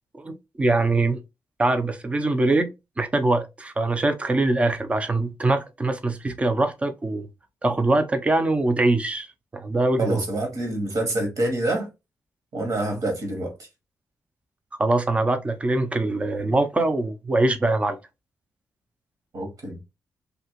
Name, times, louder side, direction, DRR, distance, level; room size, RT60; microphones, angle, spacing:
voice 1, 0.2-1.2 1.6-2.7 3.0-7.3 7.6-9.3 9.5-10.2 14.8-18.0, right 2 dB, 20° right, 0.4 m, -23 dB
voice 2, 10.0-11.9 12.5-13.7 19.3-19.8, right 1 dB, 60° right, 1.3 m, -26 dB
2.8 x 2.6 x 2.8 m
wide cardioid pair, 155°, 7 cm